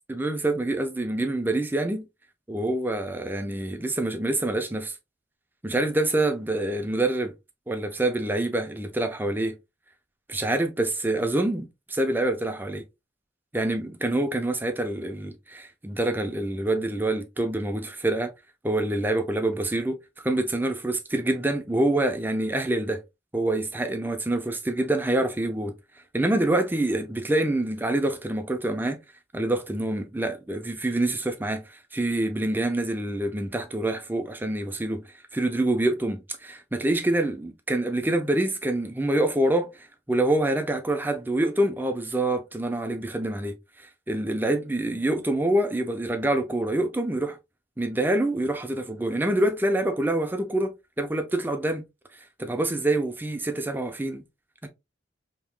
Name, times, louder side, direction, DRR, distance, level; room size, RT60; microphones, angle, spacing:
voice 1, 0.1-2.0 2.5-5.0 5.6-7.3 7.7-9.6 10.3-12.8 13.5-18.3 18.6-20.0 20.2-23.0 23.3-25.7 26.1-29.0 29.3-35.0 35.3-47.4 47.8-50.7 51.0-51.9 52.4-54.2 54.6-54.7, right 1 dB, 10° right, 0.5 m, -26 dB
3.5 x 2.9 x 2.2 m
head